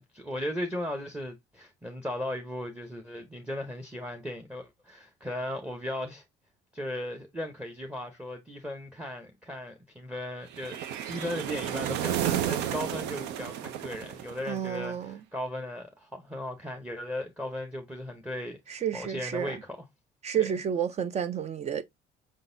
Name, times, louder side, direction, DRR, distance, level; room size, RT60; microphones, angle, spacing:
voice 1, 0.0-6.2 6.7-10.8 11.1-19.8 20.3-20.5, left 1 dB, 5° right, 0.8 m, -37 dB
sound 1, 10.5-14.8, right 10 dB, 85° right, 0.6 m, -32 dB
voice 2, 14.5-15.2 18.7-19.6 20.2-21.8, right 8 dB, 40° right, 0.5 m, -30 dB
5.1 x 3.8 x 2.6 m
cardioid pair, 110°, 17 cm